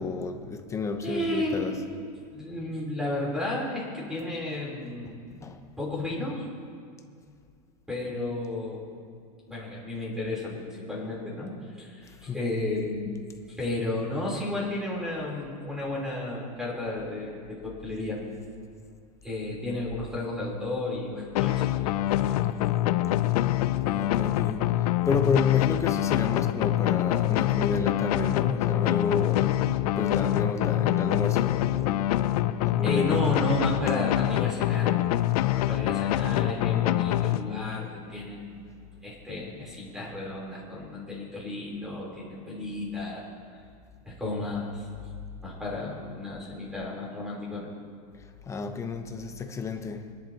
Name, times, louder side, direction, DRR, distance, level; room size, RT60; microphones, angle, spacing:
voice 1, 0.0-1.9 5.0-5.6 12.3-12.4 23.9-29.6 30.0-32.1 32.6-33.4 33.8-34.0 48.5-50.1, left 4 dB, 15° left, 5 dB, 0.9 m, -31 dB
voice 2, 1.0-1.8 2.3-5.2 5.8-6.5 7.9-8.8 9.5-13.2 13.5-18.2 19.2-21.7 32.8-34.9 35.5-38.6 39.0-43.2 44.0-44.9 45.4-47.7, left 2 dB, 5° right, -4 dB, 3.8 m, -33 dB
sound 1, 21.4-37.9, left 14 dB, 70° left, 0.6 m, -25 dB
22.0 x 11.0 x 3.0 m, 2.2 s
supercardioid pair, 145°, 20 cm